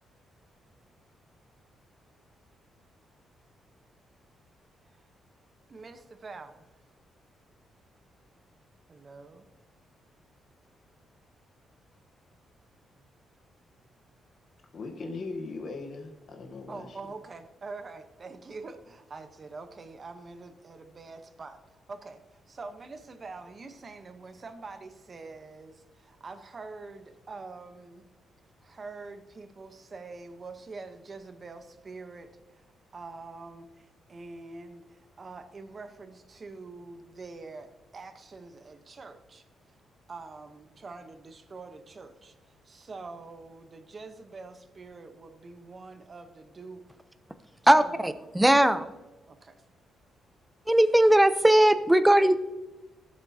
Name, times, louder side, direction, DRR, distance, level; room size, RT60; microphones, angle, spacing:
voice 1, 5.7-6.7 8.9-9.5 13.0-13.1 16.7-28.0 28.6-32.7 32.9-39.4 40.1-46.8 47.8-48.1 49.3-49.6, right 3 dB, 35° right, 9 dB, 0.9 m, -45 dB
voice 2, 14.7-16.9, left 3 dB, 50° left, 3 dB, 1.0 m, -38 dB
voice 3, 47.7-48.9 50.7-52.4, right 1 dB, 5° right, 12 dB, 0.6 m, -19 dB
16.0 x 7.4 x 2.8 m, 1.1 s
cardioid pair, 125°, 0 cm